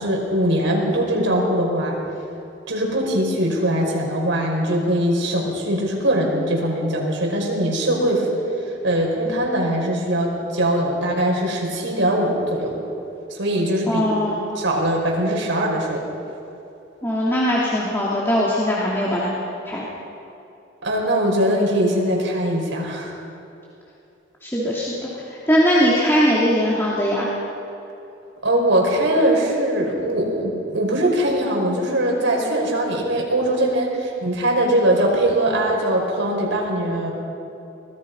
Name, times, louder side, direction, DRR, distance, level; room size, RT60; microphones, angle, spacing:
voice 1, 0.0-2.0 2.7-8.3 8.8-12.7 13.3-14.0 14.6-16.0 20.8-23.2 28.4-37.1, right 1 dB, 80° right, -1 dB, 5.4 m, -21 dB
voice 2, 13.9-14.4 17.0-19.3 19.7-19.9 24.4-25.0 25.3-27.3, equal, 15° left, -7 dB, 2.8 m, -20 dB
24.5 x 19.5 x 5.5 m, 2.8 s
head